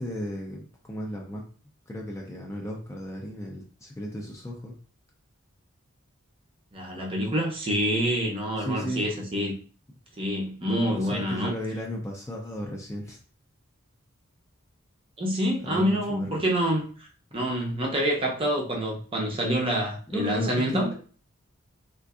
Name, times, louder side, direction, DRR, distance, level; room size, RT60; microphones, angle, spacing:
voice 1, 0.0-1.4 1.9-4.7 8.6-9.1 10.9-13.2 15.6-16.4 20.1-20.9, equal, 15° left, 0.4 m, -34 dB
voice 2, 6.7-9.5 10.2-11.5 15.2-16.8 17.3-20.9, equal, 25° right, 0.6 m, -27 dB
3.6 x 2.5 x 2.4 m
head